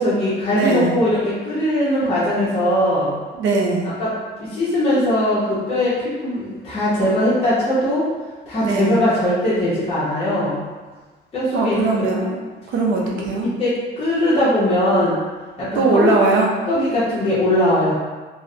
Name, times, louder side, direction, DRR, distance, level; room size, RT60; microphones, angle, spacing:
voice 1, 0.0-3.2 4.0-8.1 8.5-10.6 11.3-12.1 13.1-13.3 13.6-15.2 15.6-16.1 16.7-17.9, left 1 dB, 30° left, -10 dB, 0.7 m, -20 dB
voice 2, 0.5-0.9 3.3-3.9 8.6-9.0 11.5-12.4 12.7-13.5 15.7-16.5, right 3 dB, 80° right, -1 dB, 0.5 m, -19 dB
2.4 x 2.0 x 2.5 m, 1.3 s
cardioid pair, 90°, 20 cm